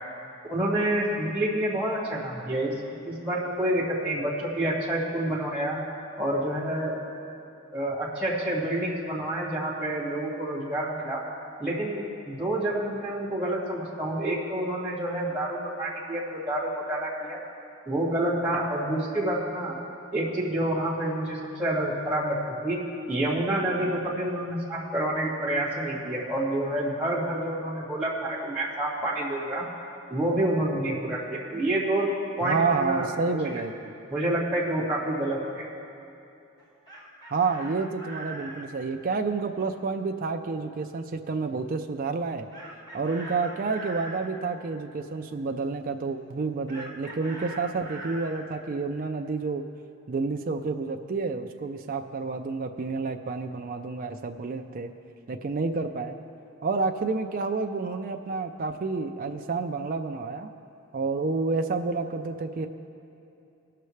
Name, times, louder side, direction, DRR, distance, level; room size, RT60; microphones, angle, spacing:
voice 1, 0.5-2.7 3.0-5.8 6.2-7.0 7.7-11.2 11.6-17.4 17.9-19.8 20.1-29.7 30.1-32.1 32.4-33.4 34.1-35.6, right 1 dB, 5° right, -7 dB, 2.0 m, -28 dB
voice 2, 32.4-33.9 37.3-42.5 42.9-49.6 50.1-54.9 55.3-56.2 56.6-60.5 60.9-62.7, right 4 dB, 40° right, 4 dB, 0.4 m, -29 dB
Chicken rooster, 36.6-38.7 42.5-44.3 46.7-48.4, right 2 dB, 20° left, 1.2 m, -41 dB
20.0 x 6.7 x 3.2 m, 2.8 s
head